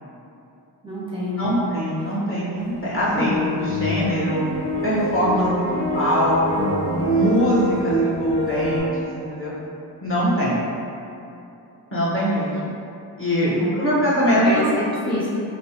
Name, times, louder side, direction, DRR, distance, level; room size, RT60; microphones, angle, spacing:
voice 1, 0.8-1.6 5.3-5.8 13.4-13.8 14.3-15.3, equal, 10° right, -8 dB, 0.7 m, -28 dB
voice 2, 1.4-4.5 4.8-9.5 10.0-10.7 11.9-12.8 13.2-14.7, equal, 25° left, -9 dB, 1.3 m, -22 dB
sound 1, 3.0-8.8, right 1 dB, 55° left, 1.5 m, -25 dB
3.1 x 3.0 x 3.0 m, 2.8 s
supercardioid pair, 45°, 46 cm